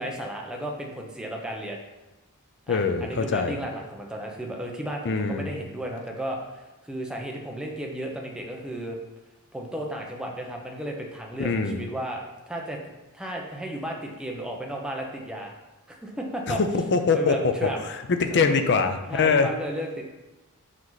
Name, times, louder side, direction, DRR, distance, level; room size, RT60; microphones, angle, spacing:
voice 1, 0.0-1.8 2.7-9.0 9.5-12.8 13.1-15.5 15.9-16.6 17.1-17.8 18.3-18.5 19.1-20.0, right 1 dB, 5° right, 0 dB, 0.8 m, -34 dB
voice 2, 2.7-3.5 5.0-5.5 11.4-11.9 16.5-17.5 17.9-19.5, left 4 dB, 55° left, 7 dB, 0.6 m, -23 dB
5.6 x 4.9 x 4.0 m, 1.1 s
head